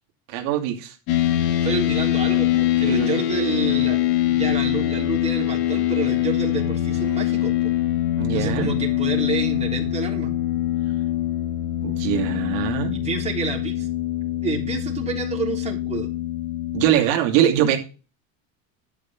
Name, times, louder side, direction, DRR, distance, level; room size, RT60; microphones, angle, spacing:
voice 1, 0.3-1.0 2.9-3.1 8.2-8.7 11.8-12.9 16.7-17.8, right 11 dB, 85° right, 3 dB, 2.6 m, -22 dB
sound 1, 1.1-16.9, left 13 dB, 85° left, 2.8 m, -23 dB
voice 2, 1.6-4.0 4.3-7.7 8.3-10.3 12.9-13.9 14.2-16.1, right 4 dB, 15° right, -1 dB, 3.6 m, -29 dB
11.5 x 5.4 x 5.9 m, 0.32 s
cardioid pair, 145°, 37 cm